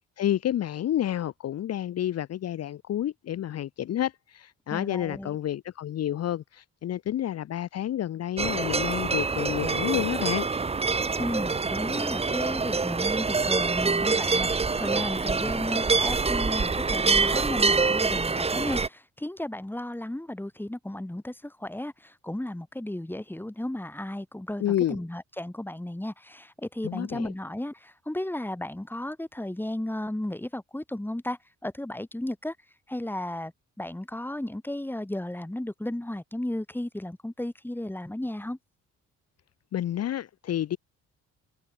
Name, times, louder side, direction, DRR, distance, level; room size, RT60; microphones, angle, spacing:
voice 1, 0.2-10.5 24.6-25.0 26.8-27.3 39.7-40.8, left 11 dB, 55° left, 0.8 m, -29 dB
voice 2, 4.7-5.4 11.2-24.6 24.9-32.5 32.9-33.5 33.8-38.6, left 1 dB, 5° left, 5.0 m, -34 dB
sound 1, 8.4-18.9, right 4 dB, 20° right, 0.9 m, -26 dB
cardioid pair, 90°, 30 cm